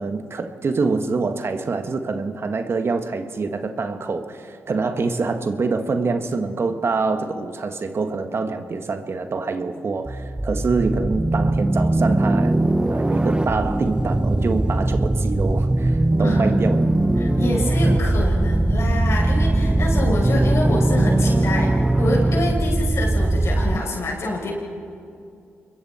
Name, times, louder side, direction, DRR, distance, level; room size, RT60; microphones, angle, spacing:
voice 1, 0.0-12.6 12.9-16.9, right 4 dB, 55° right, 7 dB, 1.5 m, -25 dB
sound 1, 10.1-23.8, right 1 dB, 15° right, 1.1 m, -20 dB
voice 2, 17.2-21.7 22.0-24.5, left 2 dB, 65° left, -2 dB, 6.2 m, -27 dB
27.5 x 22.0 x 4.4 m, 2.5 s
supercardioid pair, 50°, 5 cm